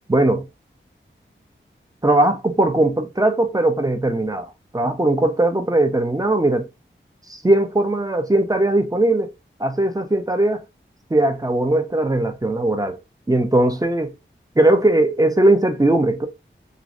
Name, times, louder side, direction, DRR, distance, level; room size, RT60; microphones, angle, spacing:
voice 1, 0.1-0.4 2.0-6.7 7.3-9.3 9.6-10.6 11.1-13.0 13.3-14.1 14.6-16.3, right 1 dB, 20° right, 0.5 m, -19 dB
2.5 x 2.0 x 2.4 m
wide cardioid pair, 50°, 21 cm